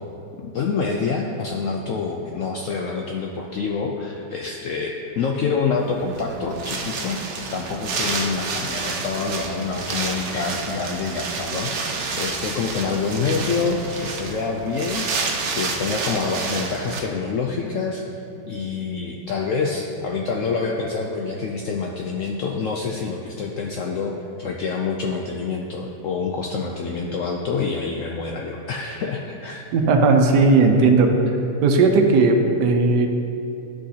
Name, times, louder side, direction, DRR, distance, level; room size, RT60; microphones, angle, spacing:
voice 1, 0.4-7.2 7.5-15.3 15.6-18.0 18.5-24.1 24.4-29.6, left 4 dB, 75° left, 1 dB, 0.7 m, -26 dB
Wind, 5.8-17.0, right 4 dB, 60° right, 0.8 m, -29 dB
voice 2, 29.7-31.1 31.6-33.1, right 3 dB, 80° right, 4 dB, 1.3 m, -16 dB
10.5 x 6.2 x 2.8 m, 2.8 s
omnidirectional pair, 1.8 m